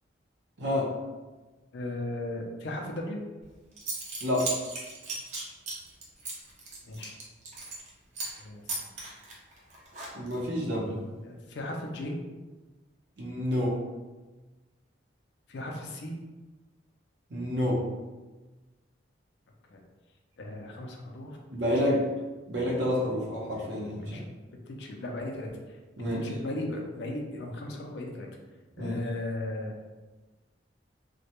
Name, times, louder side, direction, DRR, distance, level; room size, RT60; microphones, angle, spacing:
voice 1, 0.6-0.9 4.2-4.5 10.1-11.0 13.2-13.8 17.3-17.8 21.5-22.0 22.5-24.0 26.0-26.2 28.8-29.0, left 1 dB, 75° right, -4 dB, 0.7 m, -28 dB
voice 2, 1.7-3.2 6.8-7.2 8.4-8.9 11.2-12.2 15.5-16.2 19.7-19.8 20.4-21.4 21.8-22.0 24.0-24.2 24.7-25.8 26.1-28.3 28.8-29.8, left 1 dB, 70° left, 1 dB, 0.4 m, -36 dB
Zipper (clothing) / Coin (dropping), 3.4-3.5 3.8-7.9 8.1-8.4 8.7-10.4, right 3 dB, 40° right, 0.5 m, -37 dB
2.1 x 2.1 x 2.8 m, 1.2 s
head